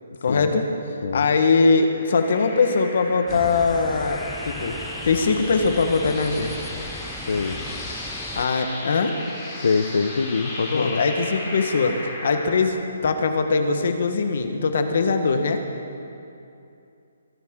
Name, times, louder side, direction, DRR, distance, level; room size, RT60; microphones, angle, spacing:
voice 1, 0.2-4.8 5.0-6.5 8.3-9.2 10.7-15.6, left 4 dB, 50° left, 7 dB, 1.3 m, -21 dB
sound 1, 1.8-12.6, left 2 dB, 20° left, 2.9 m, -35 dB
sound 2, 3.3-8.5, equal, ahead, 0.4 m, -39 dB
voice 2, 7.3-7.6 9.6-11.0, left 4 dB, 65° left, 7 dB, 0.7 m, -24 dB
23.0 x 12.5 x 3.8 m, 2.7 s
hypercardioid pair, 170°, 0 cm